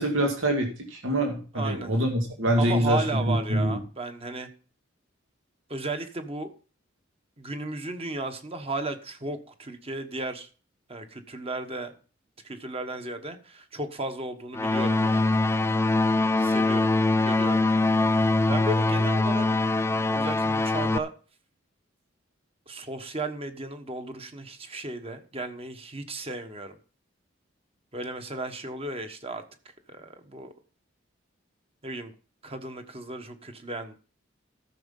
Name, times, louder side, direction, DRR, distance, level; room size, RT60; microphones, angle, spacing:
voice 1, 0.0-3.8, equal, 90° right, 1 dB, 2.3 m, -25 dB
voice 2, 1.5-1.9 2.6-4.5 5.7-6.5 7.4-10.5 10.9-11.9 12.4-15.4 16.4-16.9 17.2-17.7 18.1-19.5 20.1-21.1 22.7-26.8 27.9-29.4 29.9-30.5 31.8-32.1 32.4-33.9, right 2 dB, 30° right, 7 dB, 1.3 m, -34 dB
sound 1, 14.5-21.0, left 2 dB, 15° left, 0.5 m, -23 dB
13.5 x 6.4 x 5.4 m, 0.37 s
head